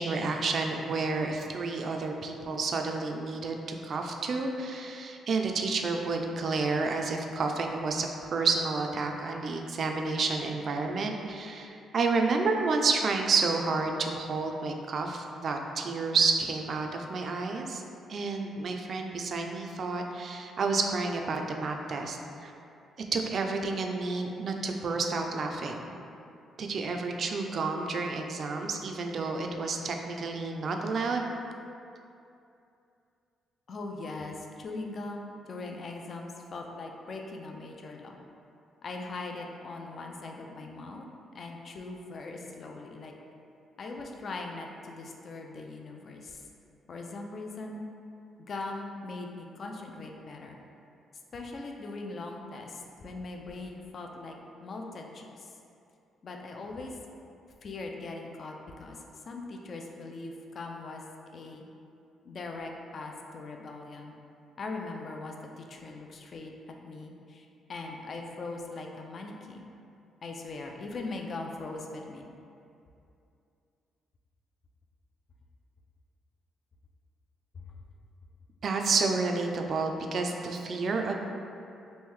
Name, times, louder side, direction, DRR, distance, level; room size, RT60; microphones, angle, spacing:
voice 1, 0.0-17.8 18.1-22.5 23.1-25.8 26.6-31.3 78.6-81.1, right 4 dB, 55° right, 3 dB, 0.3 m, -30 dB
voice 2, 33.7-38.2 38.8-41.0 41.3-43.1 43.8-46.4 46.9-47.8 48.5-50.6 51.3-54.4 54.6-55.5 56.2-57.0 57.6-59.0 59.3-61.0 61.3-61.6 62.2-64.1 64.6-66.5 66.8-69.6 70.2-72.3 77.5-77.6, left 3 dB, 50° left, 2 dB, 0.4 m, -40 dB
3.1 x 2.6 x 3.6 m, 2.6 s
cardioid pair, 90°, 0 cm